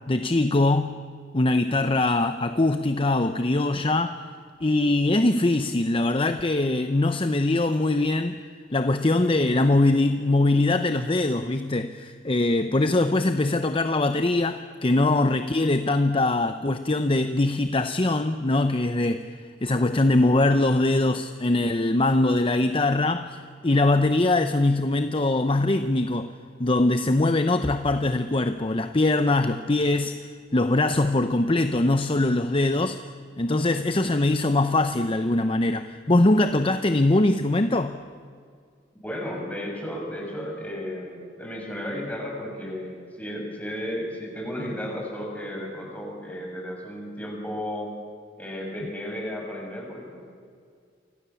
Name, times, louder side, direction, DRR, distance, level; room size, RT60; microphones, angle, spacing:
voice 1, 0.1-1.0 1.3-4.2 4.6-8.3 8.7-26.3 26.6-30.2 30.5-33.0 33.4-38.0, left 2 dB, 30° left, 9 dB, 0.8 m, -22 dB
voice 2, 39.0-48.0 48.4-50.2, equal, 10° left, -1 dB, 7.2 m, -34 dB
29.0 x 25.5 x 7.1 m, 2.2 s
head